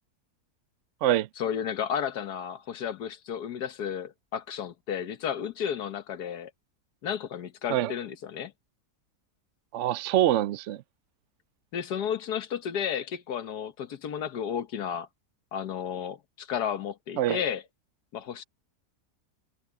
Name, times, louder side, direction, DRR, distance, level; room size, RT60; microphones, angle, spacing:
voice 1, 1.4-6.5 7.0-8.5 11.7-15.1 15.5-17.6 18.1-18.4, left 8 dB, 80° left, 1.6 m, -33 dB
voice 2, 9.7-10.8 17.2-17.4, right 12 dB, 65° right, 0.7 m, -24 dB
omnidirectional pair, 1.7 m